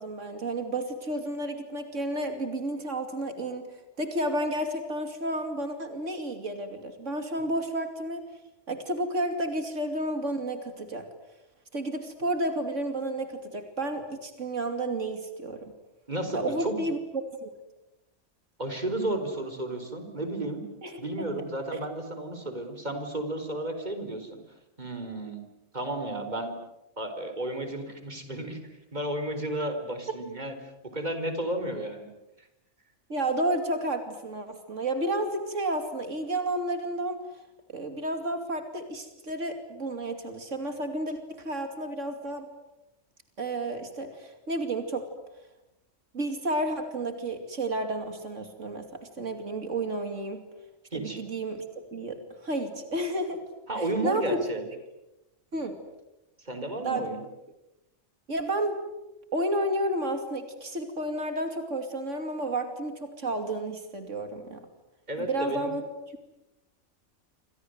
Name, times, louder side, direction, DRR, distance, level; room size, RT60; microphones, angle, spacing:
voice 1, 0.0-3.7 4.0-8.2 8.7-11.0 11.7-15.7 16.3-17.0 17.4-17.5 20.8-21.0 21.7-21.8 33.1-37.2 37.7-42.5 43.4-45.1 46.1-50.4 50.9-51.6 51.9-53.4 53.8-54.3 55.5-55.8 56.8-57.0 58.3-58.8 59.3-64.6 65.2-65.9, right 1 dB, 85° right, 6 dB, 3.0 m, -31 dB
voice 2, 16.1-16.9 18.6-20.6 21.0-24.4 24.8-25.4 25.7-26.5 27.0-28.6 28.9-32.1 50.9-51.2 53.7-54.6 56.4-57.2 65.1-65.7, right 1 dB, 35° right, 7 dB, 4.4 m, -33 dB
28.0 x 26.0 x 8.0 m, 0.94 s
omnidirectional pair, 1.2 m